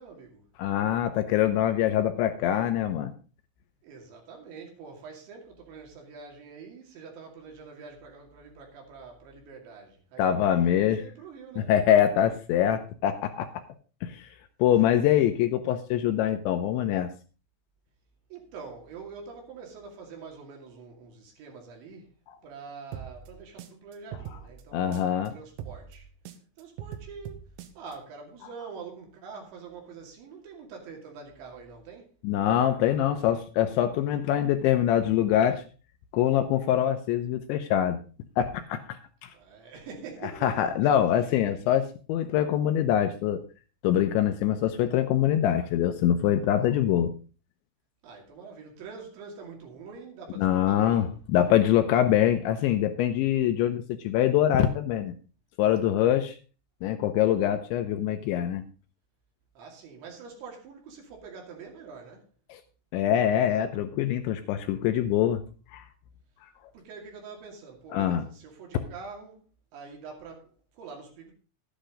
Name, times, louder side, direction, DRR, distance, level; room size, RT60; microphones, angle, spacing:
voice 1, 0.0-0.4 3.8-11.7 18.3-22.1 22.4-26.1 26.6-27.4 27.8-32.1 39.3-40.5 48.0-51.1 59.6-62.2 66.7-69.4 69.7-71.3, right 5 dB, 65° right, 4.7 m, -45 dB
voice 2, 0.6-3.1 10.2-11.0 11.6-13.5 14.0-14.3 14.6-17.1 24.7-25.3 32.2-35.6 36.1-38.0 38.4-39.3 40.4-43.4 43.8-47.1 50.4-55.1 55.6-56.4 56.8-58.6 62.5-62.6 62.9-65.4 65.7-65.8 67.9-68.2, left 11 dB, 80° left, 2.9 m, -24 dB
sound 1, 22.9-25.3 25.6-28.0, right 10 dB, 80° right, 3.5 m, -42 dB
12.5 x 10.0 x 3.8 m
omnidirectional pair, 5.8 m